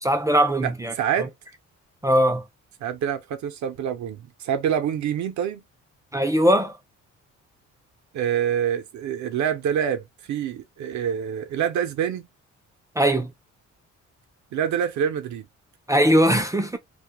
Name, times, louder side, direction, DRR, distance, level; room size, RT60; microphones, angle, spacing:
voice 1, 0.0-0.9 2.0-2.4 6.1-6.7 13.0-13.3 15.9-16.8, equal, 10° right, 0.4 m, -20 dB
voice 2, 0.6-1.3 2.8-5.6 8.1-12.3 14.5-15.5, right 9 dB, 70° right, 0.6 m, -26 dB
2.2 x 2.1 x 2.8 m
cardioid pair, 90°, 30 cm